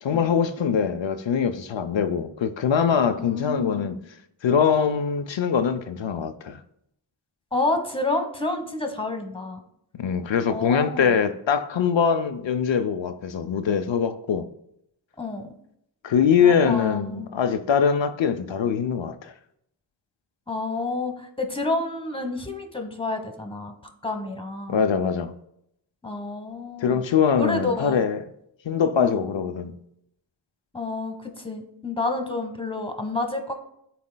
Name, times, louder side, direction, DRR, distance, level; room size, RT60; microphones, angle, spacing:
voice 1, 0.0-4.0 4.4-6.6 10.0-14.5 16.0-19.3 24.7-25.3 26.8-28.2 28.6-29.8, left 7 dB, 75° left, 0.6 m, -23 dB
voice 2, 3.2-4.1 7.5-9.6 10.4-11.2 15.2-15.5 16.4-17.3 20.5-23.7 24.0-24.9 26.0-27.0 27.4-28.1 29.0-29.3 30.7-33.6, left 2 dB, 10° left, 1.2 m, -29 dB
12.5 x 4.2 x 2.2 m
wide cardioid pair, 50°, 46 cm